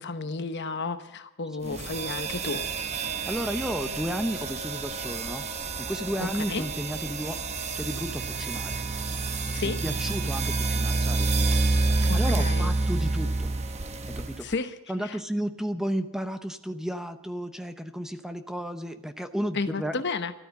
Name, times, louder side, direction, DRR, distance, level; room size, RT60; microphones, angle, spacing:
voice 1, 0.0-2.7 6.2-6.6 9.5-9.8 12.1-12.7 14.4-14.8 15.0-15.2 19.5-20.3, left 4 dB, 55° left, 9 dB, 1.0 m, -32 dB
sound 1, 1.7-14.6, right 3 dB, 30° right, 0.9 m, -28 dB
voice 2, 3.3-5.5 5.8-7.4 7.7-8.8 9.6-11.3 11.9-13.5 14.1-14.5 14.9-20.0, equal, 5° right, 8 dB, 0.7 m, -33 dB
13.5 x 13.0 x 7.1 m, 0.87 s
head